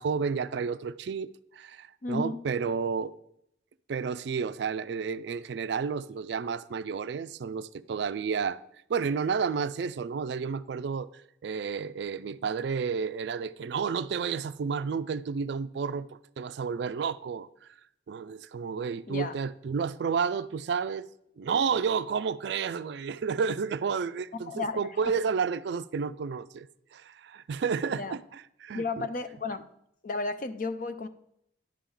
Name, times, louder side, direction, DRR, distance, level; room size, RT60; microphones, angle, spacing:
voice 1, 0.0-3.2 3.9-8.6 8.9-11.1 11.4-16.1 16.4-17.5 18.1-21.1 21.4-26.7 26.9-29.1, right 6 dB, 60° right, 0.3 m, -31 dB
voice 2, 2.0-2.4 19.1-19.4 24.5-25.1 27.9-28.1 28.7-29.6 30.0-31.1, left 3 dB, 45° left, 0.5 m, -33 dB
10.5 x 3.7 x 7.1 m
head